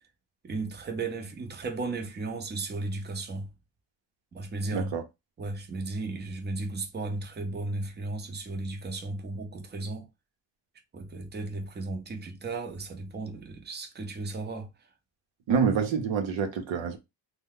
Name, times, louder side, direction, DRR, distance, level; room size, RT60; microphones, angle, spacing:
voice 1, 0.4-3.5 4.3-5.0 5.4-10.1 10.9-14.7, right 3 dB, 25° right, 0.6 m, -35 dB
voice 2, 4.7-5.0 15.5-17.0, right 6 dB, 80° right, 0.8 m, -27 dB
2.7 x 2.1 x 3.6 m
wide cardioid pair, 130°, 45 cm